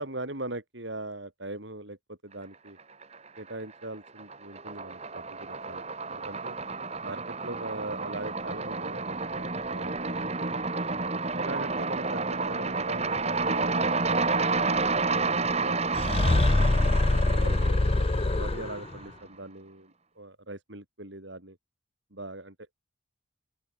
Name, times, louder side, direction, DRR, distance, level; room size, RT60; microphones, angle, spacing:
voice 1, 0.0-2.8 3.4-6.6 7.0-10.6 11.3-16.5 17.3-18.1 18.3-21.6 22.1-22.6, right 2 dB, 60° right, 4.5 m, -41 dB
sound 1, 2.8-3.5 3.8-19.0, right 3 dB, 30° right, 2.4 m, -30 dB
sound 2, 15.9-19.0, left 2 dB, 30° left, 0.5 m, -24 dB
open air
head